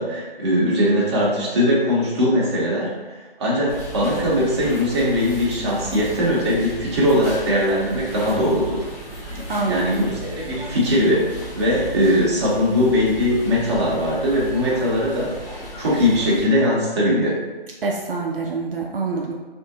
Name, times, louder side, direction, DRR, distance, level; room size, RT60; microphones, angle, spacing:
voice 1, 0.0-8.9 9.7-11.2 11.6-15.3 15.8-17.4, equal, 30° right, -6 dB, 0.8 m, -20 dB
sound 1, 3.7-16.5, equal, 20° left, 0.9 m, -35 dB
voice 2, 9.5-10.1 17.8-19.3, right 3 dB, 65° right, -1 dB, 0.5 m, -25 dB
3.5 x 2.6 x 2.7 m, 1.2 s
figure-of-eight pair, 155°, 30 cm